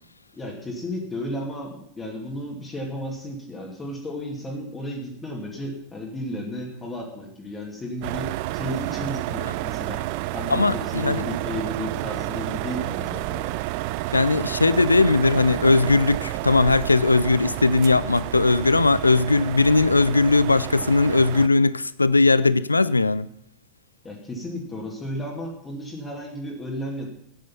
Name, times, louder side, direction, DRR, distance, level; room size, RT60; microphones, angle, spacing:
voice 1, 0.3-10.1 10.3-13.5 24.0-27.1, equal, 15° left, 2.5 m, -33 dB
sound 1, 8.0-21.5, right 18 dB, 45° right, 0.4 m, -30 dB
voice 2, 10.5-11.2 14.1-23.3, left 3 dB, 80° left, 0.4 m, -19 dB
13.0 x 9.4 x 5.6 m
figure-of-eight pair, 90°, 0 cm